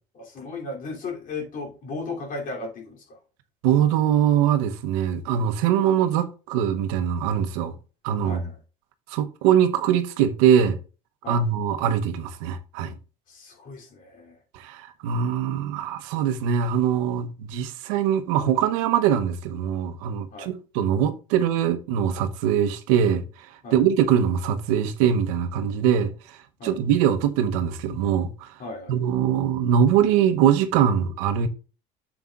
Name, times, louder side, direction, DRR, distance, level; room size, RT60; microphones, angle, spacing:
voice 1, 0.2-3.0 8.2-8.6 11.2-11.4 13.3-14.4 20.3-20.5 23.6-23.8 26.6-26.8 28.6-29.0, left 3 dB, 55° left, 3.0 m, -35 dB
voice 2, 3.6-7.7 8.0-8.4 9.1-10.8 11.3-12.9 14.5-23.2 23.7-28.5 28.9-31.5, right 9 dB, 85° right, 0.9 m, -22 dB
9.3 x 7.1 x 2.4 m
supercardioid pair, 90°, 17 cm